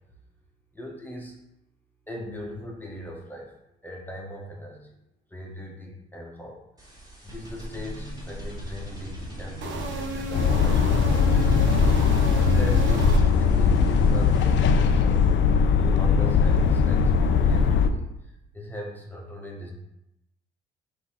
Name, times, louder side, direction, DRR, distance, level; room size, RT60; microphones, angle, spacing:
voice 1, 0.7-1.3 2.1-3.5 3.8-4.9 5.3-6.6 7.2-11.7 12.3-15.2 15.8-18.0 18.5-19.7, left 1 dB, 10° left, -1 dB, 1.0 m, -39 dB
sound 1, 6.8-15.0, equal, 20° right, 1.6 m, -36 dB
sound 2, 9.6-13.7, right 3 dB, 70° right, 0.6 m, -34 dB
sound 3, 10.3-17.9, left 5 dB, 70° left, 0.4 m, -20 dB
3.9 x 2.8 x 4.3 m, 0.86 s
cardioid pair, 90°, 20 cm